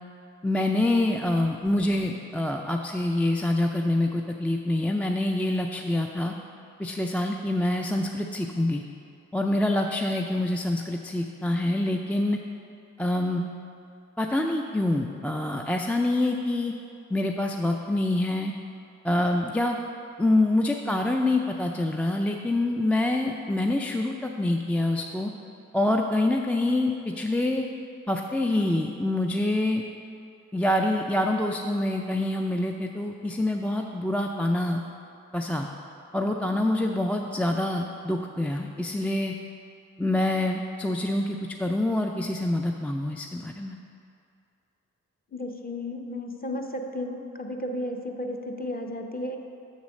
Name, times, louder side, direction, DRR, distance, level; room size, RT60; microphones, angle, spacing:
voice 1, 0.4-6.3 6.8-8.8 9.3-12.4 13.0-13.4 14.2-16.7 17.1-18.5 19.0-19.8 20.2-25.3 25.7-27.7 28.1-29.8 30.5-34.8 35.3-35.7 36.1-39.3 40.0-43.8, left 1 dB, 5° left, 2 dB, 0.4 m, -26 dB
voice 2, 45.3-49.4, left 1 dB, 25° left, 2 dB, 0.8 m, -33 dB
6.3 x 4.1 x 6.2 m, 2.5 s
supercardioid pair, 40°, 32 cm